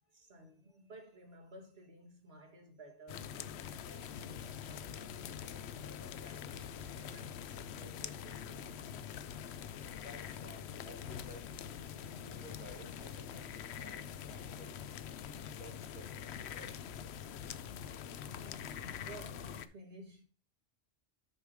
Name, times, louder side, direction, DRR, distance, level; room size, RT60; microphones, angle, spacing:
voice 1, 0.1-3.4 3.8-8.8 18.3-20.2, right 1 dB, 65° right, 1.9 m, -55 dB
sound 1, 3.1-19.7, left 8 dB, 75° left, 0.8 m, -45 dB
voice 2, 9.8-11.5 12.1-14.9 15.5-16.8, equal, 10° right, 2.9 m, -55 dB
6.4 x 5.0 x 4.7 m
omnidirectional pair, 1.1 m